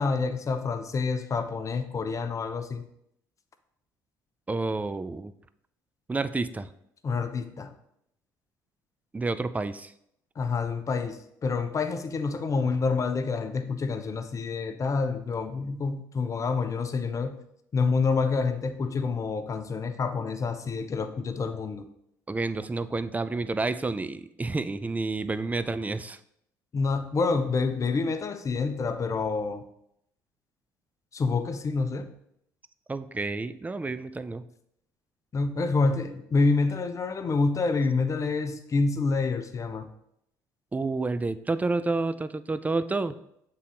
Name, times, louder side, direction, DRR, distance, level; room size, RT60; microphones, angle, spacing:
voice 1, 0.0-2.8 7.0-7.7 10.4-17.4 17.7-21.8 26.7-29.6 31.1-32.1 35.3-39.9, left 4 dB, 35° left, 9 dB, 0.7 m, -27 dB
voice 2, 4.5-5.3 6.1-6.7 9.1-9.9 22.3-26.2 32.9-34.5 40.7-43.2, right 3 dB, 15° right, 13 dB, 0.4 m, -29 dB
6.7 x 3.8 x 4.3 m, 0.75 s
hypercardioid pair, 65°, 9 cm